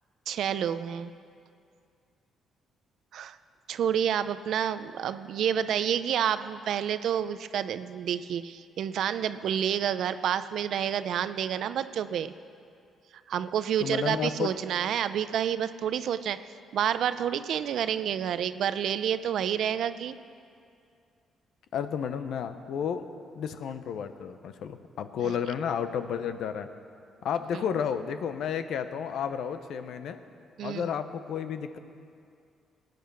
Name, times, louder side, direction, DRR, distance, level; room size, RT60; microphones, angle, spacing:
voice 1, 0.3-1.1 3.1-3.4 3.7-12.3 13.3-16.4 16.7-20.1 27.5-27.6 30.6-30.9, right 9 dB, 70° right, 13 dB, 0.5 m, -29 dB
voice 2, 13.8-14.5 21.7-23.0 23.4-26.7 27.2-30.2 30.6-31.8, left 7 dB, 75° left, 10 dB, 0.8 m, -32 dB
18.5 x 9.3 x 6.2 m, 2.4 s
cardioid pair, 90°, 0 cm